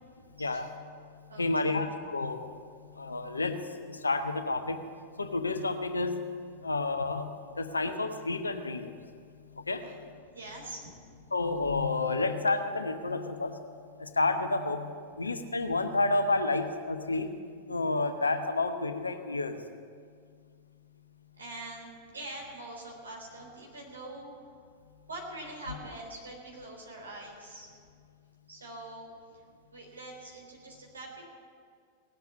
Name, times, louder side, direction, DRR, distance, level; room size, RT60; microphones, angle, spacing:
voice 1, 0.4-0.7 1.4-2.5 3.0-4.9 5.2-6.2 6.6-8.9 9.6-9.9 11.3-13.6 14.0-14.9 15.2-17.3 17.7-19.6, left 3 dB, 80° left, 8 dB, 0.9 m, -30 dB
voice 2, 1.3-1.7 9.8-10.0 10.3-10.9 21.4-24.6 25.1-27.7 28.5-29.1 29.3-29.4 29.7-31.3, right 2 dB, 75° right, -1 dB, 3.7 m, -44 dB
18.0 x 8.1 x 8.4 m, 2.1 s
figure-of-eight pair, 90°, 0 cm